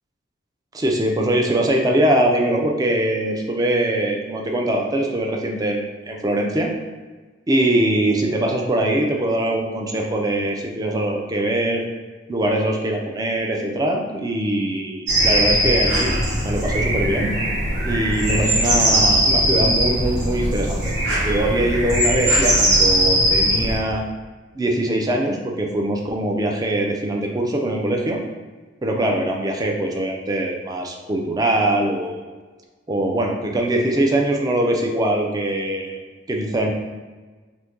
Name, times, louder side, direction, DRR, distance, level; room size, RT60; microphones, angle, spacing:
voice 1, 0.7-6.7 7.5-11.9 12.3-16.1 16.4-17.3 17.8-20.9 21.2-24.0 24.5-28.2 28.8-32.3 32.9-36.0 36.3-36.7, right 1 dB, 20° right, 1 dB, 0.3 m, -22 dB
sound 1, 15.1-23.8, equal, 80° right, 1.1 m, -20 dB
2.6 x 2.5 x 3.5 m, 1.3 s
head